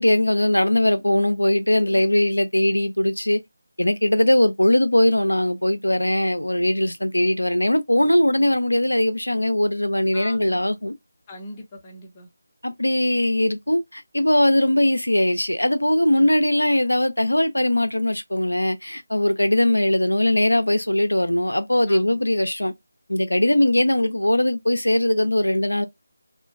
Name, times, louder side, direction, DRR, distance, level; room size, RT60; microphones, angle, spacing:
voice 1, 0.0-3.4 3.8-10.9 12.6-22.7 23.1-25.9, left 1 dB, 90° left, 0.4 m, -20 dB
voice 2, 10.1-10.7 11.3-12.3 16.1-16.3 21.9-22.2 23.5-23.6, left 1 dB, 20° left, 0.6 m, -41 dB
2.4 x 2.1 x 2.3 m
figure-of-eight pair, 160°, 0 cm